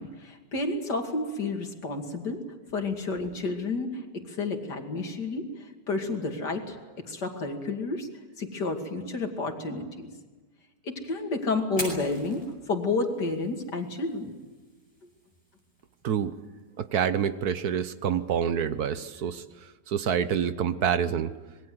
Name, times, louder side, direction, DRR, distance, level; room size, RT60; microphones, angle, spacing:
voice 1, 0.0-2.4 2.7-5.4 5.9-6.7 7.1-8.1 8.4-10.1 10.9-14.3, left 3 dB, 75° left, 4 dB, 3.1 m, -30 dB
Fire, 11.6-19.6, left 1 dB, 20° left, 7.3 m, -45 dB
voice 2, 16.8-19.4 19.9-21.3, right 8 dB, 65° right, 12 dB, 1.4 m, -27 dB
26.0 x 21.5 x 7.9 m, 1.3 s
omnidirectional pair, 1.8 m